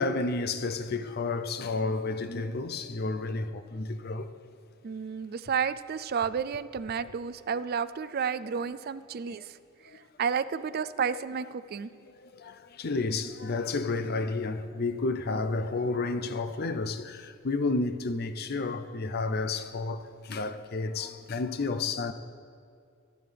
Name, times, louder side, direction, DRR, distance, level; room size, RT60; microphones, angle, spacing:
voice 1, 0.0-4.3 9.9-10.0 12.1-22.1, left 3 dB, 50° left, 0.6 m, -31 dB
voice 2, 4.8-9.6 10.2-11.9, right 6 dB, 50° right, 0.4 m, -31 dB
25.0 x 9.3 x 3.4 m
head